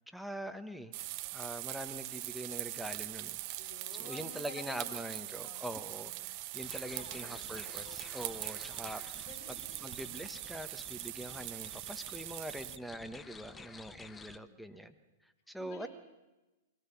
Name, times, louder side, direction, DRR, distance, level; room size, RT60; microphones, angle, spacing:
voice 1, 0.1-0.9 1.3-3.4 4.0-9.0 9.5-15.0 15.2-15.9, right 1 dB, ahead, 7 dB, 1.4 m, -43 dB
sound 1, 0.9-12.8, right 19 dB, 45° right, 0.8 m, -42 dB
voice 2, 3.5-5.0 5.3-6.3 6.9-8.1 9.1-10.3 14.2-14.5 15.6-15.9, left 5 dB, 50° left, 4 dB, 4.4 m, -53 dB
sound 2, 6.6-14.4, left 4 dB, 15° left, 0.8 m, -52 dB
23.5 x 17.5 x 7.2 m, 1.1 s
hypercardioid pair, 110°, 0 cm